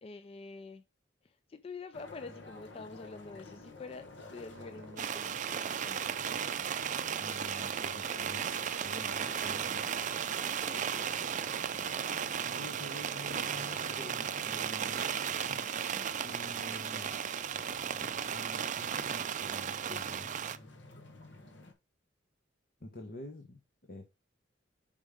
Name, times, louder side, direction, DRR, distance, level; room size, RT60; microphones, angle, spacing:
voice 1, 0.0-0.8 1.2-4.1 4.3-6.4 10.4-11.3 11.6-12.2, left 4 dB, 30° left, 0.3 m, -48 dB
sound 1, 1.9-21.7, left 2 dB, 75° left, 1.4 m, -52 dB
sound 2, 4.5-17.1, right 4 dB, 85° right, 0.6 m, -52 dB
Rain on canvas tent, 5.0-20.6, right 8 dB, 40° right, 0.4 m, -35 dB
voice 2, 7.2-8.5 8.8-10.1 12.5-15.2 15.5-17.2 18.0-20.3 22.8-23.6 23.9-24.0, left 1 dB, 55° left, 1.0 m, -48 dB
5.3 x 5.2 x 5.0 m
head